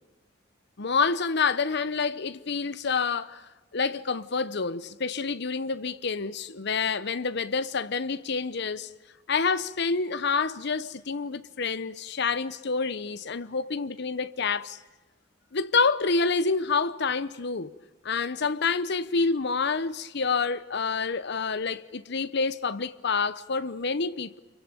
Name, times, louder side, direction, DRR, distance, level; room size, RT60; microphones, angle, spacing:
voice 1, 0.8-3.4 3.7-8.9 9.3-14.8 15.5-17.7 18.0-24.4, left 4 dB, 60° left, 0.9 m, -28 dB
26.5 x 23.5 x 9.0 m
head